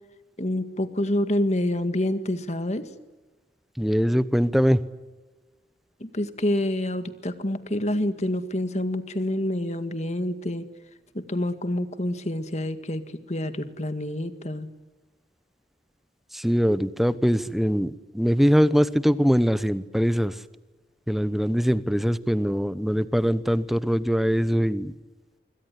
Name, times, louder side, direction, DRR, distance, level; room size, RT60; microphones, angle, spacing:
voice 1, 0.4-2.9 6.0-10.6 11.1-14.7, left 1 dB, 40° left, 10 dB, 2.0 m, -27 dB
voice 2, 3.8-4.8 16.3-20.4 21.1-24.9, equal, ahead, 14 dB, 0.9 m, -22 dB
26.0 x 23.0 x 9.7 m, 1.2 s
head